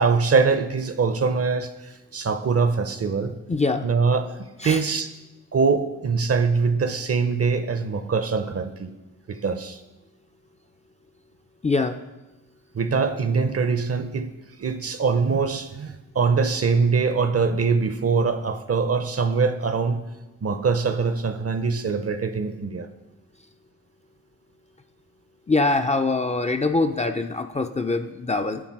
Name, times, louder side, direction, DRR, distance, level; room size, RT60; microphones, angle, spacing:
voice 1, 0.0-1.7 2.1-3.3 3.8-4.3 4.6-5.1 5.5-8.9 9.3-9.8 12.7-14.3 14.6-20.0 20.4-22.9, right 5 dB, 45° right, 9 dB, 0.6 m, -23 dB
voice 2, 3.5-3.9 4.6-4.8 11.6-12.0 25.5-28.6, left 3 dB, 20° left, 6 dB, 0.4 m, -23 dB
8.6 x 3.5 x 4.7 m, 1.1 s
cardioid pair, 50°, 33 cm